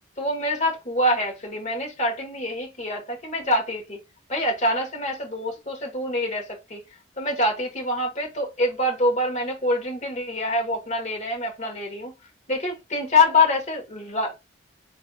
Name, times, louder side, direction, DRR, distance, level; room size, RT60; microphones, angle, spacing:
voice 1, 0.2-4.0 4.3-6.8 7.2-12.1 12.5-14.3, left 2 dB, 35° left, 1.3 m, -25 dB
4.6 x 3.4 x 2.3 m
head